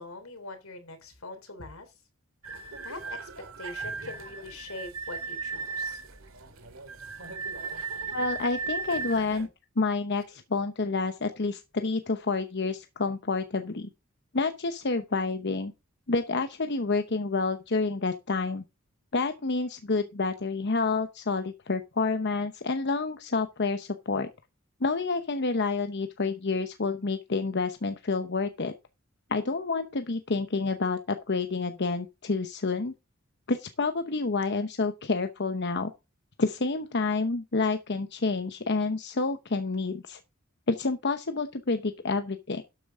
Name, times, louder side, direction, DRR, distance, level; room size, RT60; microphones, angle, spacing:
voice 1, 0.0-1.9 2.8-3.3 3.6-6.0, left 2 dB, 75° left, 3.3 m, -42 dB
sound 1, 2.4-9.5, right 4 dB, 70° right, 2.3 m, -37 dB
voice 2, 8.1-9.5 9.8-13.9 14.3-15.7 16.1-18.6 19.1-24.3 24.8-28.7 29.3-32.9 33.5-35.9 36.4-40.2 40.7-42.6, left 3 dB, 55° left, 0.9 m, -29 dB
12.0 x 8.5 x 3.7 m
head